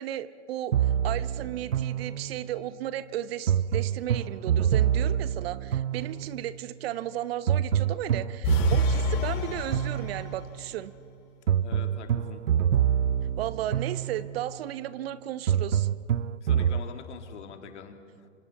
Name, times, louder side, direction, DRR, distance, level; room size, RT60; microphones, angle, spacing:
voice 1, 0.0-10.9 13.4-15.9, right 12 dB, 55° right, 15 dB, 0.9 m, -35 dB
sound 1, 0.7-2.6 3.5-6.5 7.5-10.6 11.5-14.5 15.5-16.8, right 9 dB, 85° right, 0.7 m, -26 dB
sound 2, 8.4-10.7, left 9 dB, 45° left, 2.3 m, -31 dB
voice 2, 11.6-12.4 16.4-18.3, left 7 dB, 70° left, 6 dB, 2.3 m, -44 dB
28.0 x 25.5 x 4.2 m, 2.2 s
hypercardioid pair, 120°, 36 cm